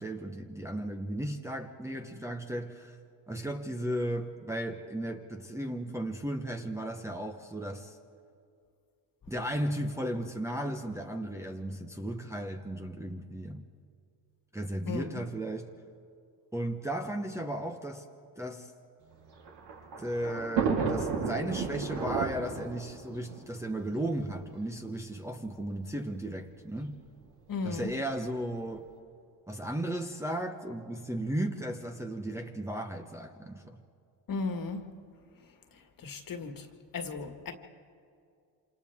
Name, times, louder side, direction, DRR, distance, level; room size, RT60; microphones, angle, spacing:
voice 1, 0.0-2.9 3.3-8.0 9.3-13.6 14.5-15.7 16.5-18.1 18.4-18.7 20.0-27.0 27.6-28.9 29.5-33.8, right 1 dB, 5° right, 1.0 m, -35 dB
Thunder, 19.1-24.4 25.3-25.4 25.6-25.7 26.8-27.1, right 5 dB, 65° right, 3.5 m, -33 dB
voice 2, 27.5-27.9 34.3-34.8 36.0-36.7 36.9-37.5, left 4 dB, 45° left, 1.9 m, -35 dB
27.5 x 27.0 x 3.6 m
cardioid pair, 105°, 46 cm